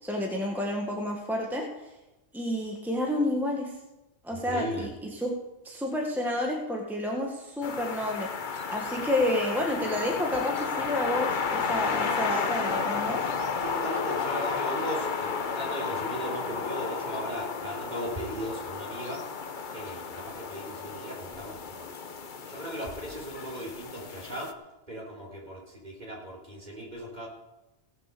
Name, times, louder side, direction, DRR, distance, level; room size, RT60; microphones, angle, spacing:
voice 1, 0.0-1.7 2.3-3.7 4.2-5.3 5.6-8.3 8.7-13.3, left 1 dB, ahead, 0 dB, 1.6 m, -30 dB
voice 2, 4.3-4.9 13.6-19.2 19.7-21.9 22.5-24.5 24.9-27.3, equal, 40° right, -2 dB, 4.1 m, -37 dB
sound 1, 7.6-24.5, left 5 dB, 50° left, 0.9 m, -32 dB
17.0 x 6.9 x 6.8 m, 1.0 s
omnidirectional pair, 1.1 m